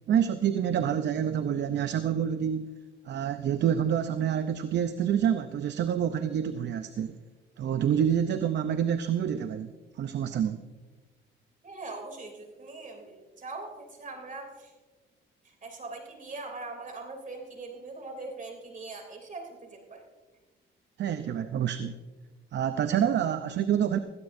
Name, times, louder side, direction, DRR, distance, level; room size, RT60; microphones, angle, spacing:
voice 1, 0.1-2.7 3.1-7.2 7.6-9.7 10.0-10.6 21.0-22.0 22.5-24.0, right 9 dB, 60° right, 10 dB, 0.6 m, -27 dB
voice 2, 11.6-14.7 15.4-20.1, right 3 dB, 40° right, 3 dB, 3.0 m, -41 dB
16.5 x 16.5 x 2.6 m, 1.3 s
cardioid pair, 90°, 20 cm